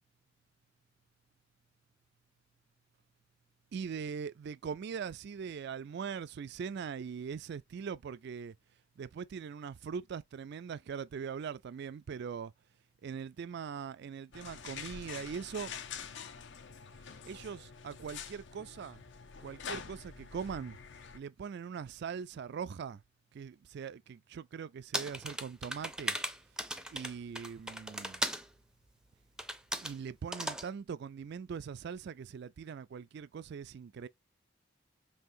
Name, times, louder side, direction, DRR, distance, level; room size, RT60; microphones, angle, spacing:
voice 1, 3.7-8.5 9.0-12.5 13.0-15.7 17.3-19.0 19.4-20.8 21.1-23.0 23.3-26.2 26.9-28.2 29.8-34.1, right 6 dB, 60° right, 0.3 m, -41 dB
sound 1, 14.3-21.2, left 6 dB, 65° left, 0.7 m, -46 dB
sound 2, 24.9-28.5 29.4-30.0 30.3-30.7, right 1 dB, 5° right, 0.5 m, -37 dB
5.6 x 2.9 x 2.6 m
head